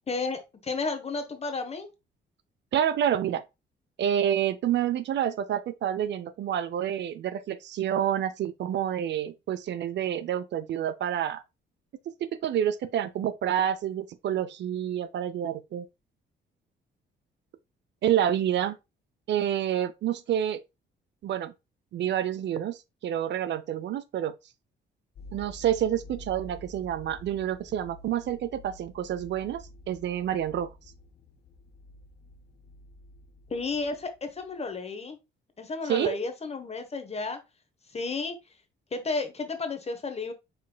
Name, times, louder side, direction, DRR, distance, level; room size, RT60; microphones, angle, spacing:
voice 1, 0.1-1.9 33.5-35.2 35.6-37.4 37.9-38.4 38.9-40.3, left 3 dB, 30° left, 1.1 m, -32 dB
voice 2, 2.7-3.4 4.0-11.4 12.4-15.9 18.0-18.8 19.3-20.6 21.2-21.5 21.9-24.3 25.3-30.7 35.9-36.2, right 10 dB, 65° right, 0.5 m, -28 dB
sound 1, 25.2-34.2 34.4-34.6, left 1 dB, 55° left, 0.8 m, -49 dB
5.3 x 4.4 x 2.3 m
cardioid pair, 90°, 20 cm